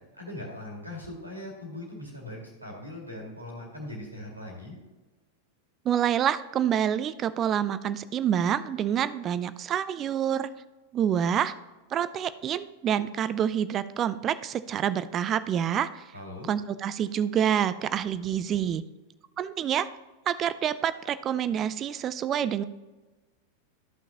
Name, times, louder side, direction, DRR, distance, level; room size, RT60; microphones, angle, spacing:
voice 1, 0.2-4.7 16.1-16.5, left 1 dB, 85° right, 0 dB, 2.0 m, -40 dB
voice 2, 5.9-10.5 10.9-11.5 11.9-16.0 16.5-18.8 19.4-19.9 20.3-22.6, right 9 dB, 30° right, 15 dB, 0.4 m, -27 dB
13.0 x 5.9 x 2.9 m, 1.2 s
figure-of-eight pair, 90°, 0 cm